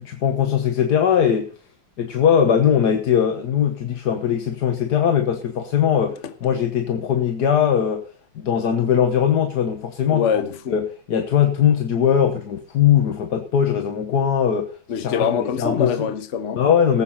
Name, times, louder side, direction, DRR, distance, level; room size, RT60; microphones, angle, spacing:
voice 1, 0.0-1.5 2.0-8.0 8.3-10.2 10.7-15.9 16.6-17.0, left 8 dB, 60° left, 1.6 m, -20 dB
voice 2, 10.1-10.8 14.9-16.6, left 7 dB, 45° left, 1.1 m, -24 dB
18.5 x 8.3 x 4.2 m
omnidirectional pair, 2.0 m